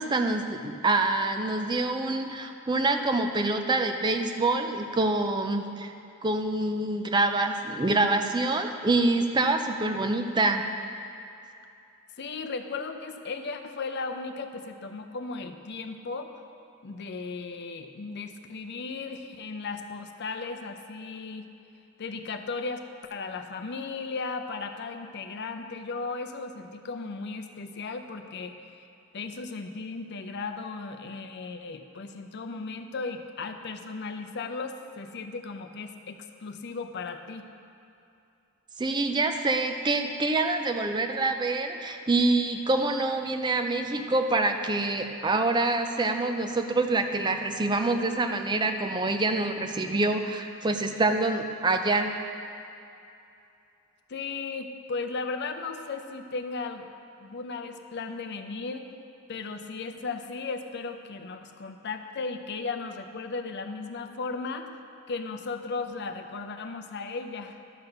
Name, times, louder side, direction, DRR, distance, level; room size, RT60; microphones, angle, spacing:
voice 1, 0.0-5.9 6.2-10.6 38.8-52.1, right 2 dB, 20° right, 5 dB, 0.5 m, -26 dB
voice 2, 12.2-16.4 16.8-21.5 22.0-22.8 23.1-28.8 29.1-37.5 54.1-56.9 57.2-58.9 59.3-64.7 65.1-67.6, left 4 dB, 50° left, 6 dB, 0.6 m, -36 dB
12.0 x 4.1 x 6.7 m, 2.7 s
head